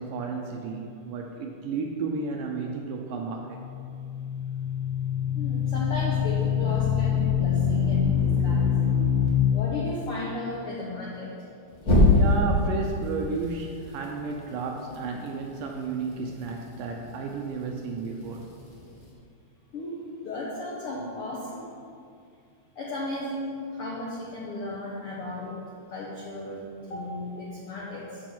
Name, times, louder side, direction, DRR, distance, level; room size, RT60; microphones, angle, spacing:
voice 1, 0.0-3.6 12.1-18.5, right 4 dB, 75° right, 2 dB, 2.1 m, -32 dB
sound 1, 3.5-9.3 11.8-12.6, left 5 dB, 35° left, 1.7 m, -23 dB
voice 2, 5.3-8.8 9.5-11.3 19.7-21.7 22.8-25.6 25.9-28.2, left 2 dB, 85° left, -4 dB, 1.2 m, -35 dB
8.8 x 5.3 x 7.2 m, 2.3 s
omnidirectional pair, 4.3 m